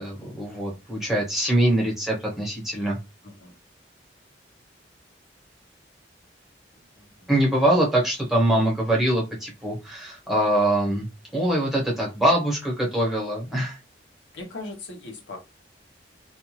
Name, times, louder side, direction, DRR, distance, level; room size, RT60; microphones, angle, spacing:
voice 1, 0.0-3.0 7.3-11.1 11.3-13.8, right 1 dB, ahead, 1.2 m, -23 dB
voice 2, 3.2-3.5 6.7-7.3 14.3-15.4, left 2 dB, 85° left, 1.0 m, -40 dB
2.5 x 2.4 x 3.0 m
head